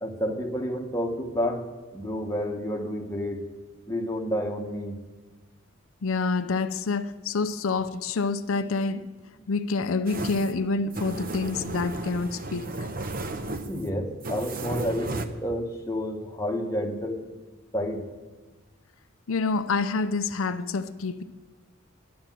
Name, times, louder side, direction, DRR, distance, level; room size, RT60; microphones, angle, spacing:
voice 1, 0.0-1.6 1.9-3.4 3.9-5.0 13.4-17.2 17.7-18.1, equal, 15° left, 1.2 m, -30 dB
voice 2, 6.0-9.0 9.5-12.9 19.3-21.2, left 4 dB, 85° left, 0.6 m, -27 dB
sound 1, 10.1-15.3, right 2 dB, 45° right, 0.8 m, -34 dB
11.5 x 10.5 x 7.5 m
head